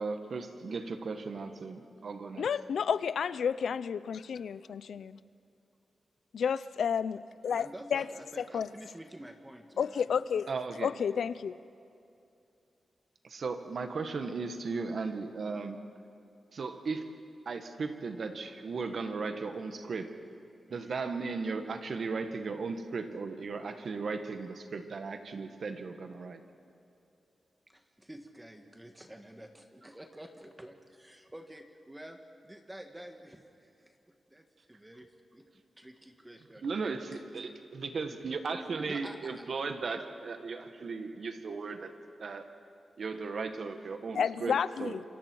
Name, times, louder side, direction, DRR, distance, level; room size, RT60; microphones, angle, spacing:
voice 1, 0.0-2.5 10.5-10.9 13.2-15.8 16.5-17.1 17.4-20.2 20.7-26.4 36.6-42.6 43.0-45.0, right 4 dB, 65° right, 7 dB, 1.7 m, -36 dB
voice 2, 2.4-5.0 6.3-8.0 8.5-8.7 9.8-10.5 10.8-11.6 44.1-45.0, left 7 dB, 80° left, 16 dB, 0.5 m, -31 dB
voice 3, 7.5-10.4 20.7-21.0 27.7-32.2 32.4-34.5 34.8-35.1 35.3-35.4 35.8-36.7 38.9-39.4, right 1 dB, 10° right, 4 dB, 1.6 m, -49 dB
27.5 x 25.5 x 4.7 m, 2.5 s
cardioid pair, 80°, 0 cm